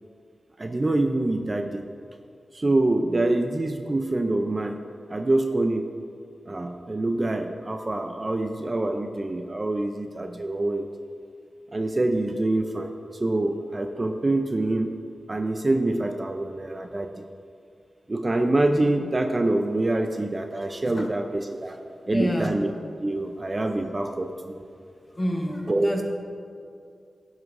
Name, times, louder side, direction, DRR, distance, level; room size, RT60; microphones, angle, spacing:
voice 1, 0.6-1.9 2.5-4.8 5.1-5.9 6.5-10.9 11.7-12.9 13.2-15.0 15.3-17.2 18.1-21.8 22.1-22.7 23.0-24.7 25.7-26.0, right 2 dB, 25° right, 5 dB, 0.4 m, -25 dB
voice 2, 22.1-22.5 25.2-26.0, equal, 25° left, 2 dB, 1.0 m, -28 dB
16.0 x 7.9 x 2.5 m, 2.4 s
wide cardioid pair, 145°, 0 cm